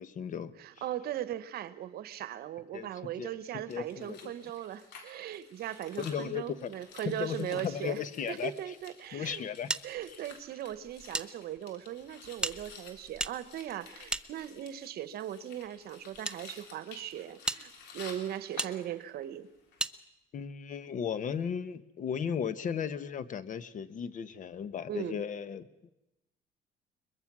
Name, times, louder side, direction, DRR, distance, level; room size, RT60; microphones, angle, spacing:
voice 1, 0.0-0.5 2.7-2.9 3.2-3.4 3.7-4.3 6.0-6.7 7.0-8.8 9.1-9.7 20.3-25.9, left 7 dB, 50° left, 14 dB, 1.1 m, -36 dB
voice 2, 0.6-8.0 8.3-9.4 9.8-19.5 24.9-25.2, right 11 dB, 65° right, 14 dB, 1.1 m, -39 dB
sound 1, 3.7-19.3 19.6-19.8, left 5 dB, 90° left, 3.5 m, -53 dB
sound 2, 9.7-11.3 11.6-11.7 12.4-14.8 15.6-16.4 16.9-17.0 17.4-17.6 18.6-18.7 19.8-20.0, right 2 dB, 5° right, 0.6 m, -36 dB
22.0 x 22.0 x 6.2 m, 0.95 s
cardioid pair, 110°, 17 cm